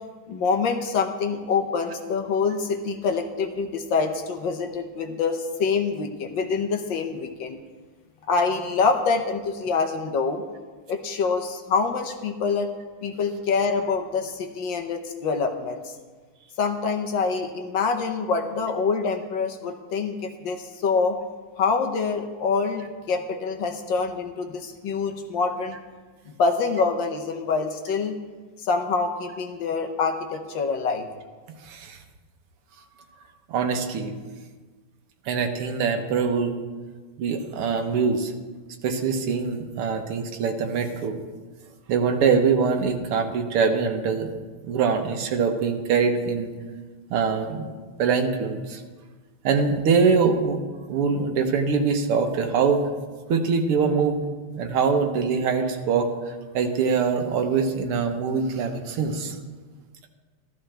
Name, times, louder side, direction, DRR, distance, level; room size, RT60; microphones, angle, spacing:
voice 1, 0.3-7.6 8.3-10.4 10.9-12.7 13.0-15.9 16.6-21.2 21.6-25.8 26.3-28.1 28.6-31.1, left 4 dB, 65° left, 4 dB, 1.4 m, -25 dB
voice 2, 31.6-32.0 33.5-34.1 35.3-36.6 37.2-38.3 38.8-41.2 41.9-44.3 44.6-46.5 47.1-47.7 48.0-48.8 49.4-50.6 50.9-52.8 53.3-54.2 54.6-59.4, right 5 dB, 85° right, 5 dB, 2.0 m, -23 dB
14.5 x 13.0 x 3.3 m, 1.4 s
omnidirectional pair, 2.4 m